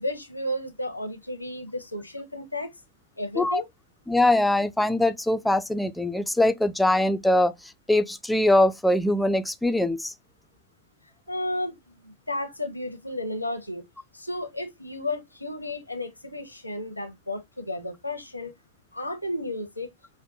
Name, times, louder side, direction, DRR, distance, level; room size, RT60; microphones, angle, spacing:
voice 1, 0.0-2.7 3.2-3.6 11.3-13.9 14.1-18.5 18.9-19.9, left 1 dB, 85° left, 0.7 m, -33 dB
voice 2, 4.1-10.1, left 1 dB, 5° left, 0.4 m, -22 dB
5.0 x 2.1 x 2.6 m
figure-of-eight pair, 90°, 0 cm